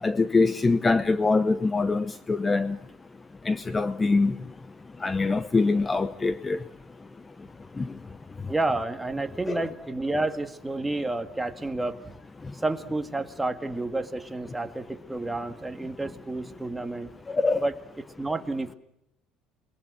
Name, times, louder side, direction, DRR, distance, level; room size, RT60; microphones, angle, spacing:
voice 1, 0.0-2.8 3.4-4.4 5.0-6.6 7.8-7.9 9.5-9.6 17.3-17.7, left 3 dB, 20° left, 0.8 m, -24 dB
voice 2, 8.5-12.0 12.5-17.1 17.6-17.7 18.2-18.7, right 2 dB, 10° right, 1.9 m, -30 dB
29.0 x 21.5 x 6.3 m
cardioid pair, 120°, 0 cm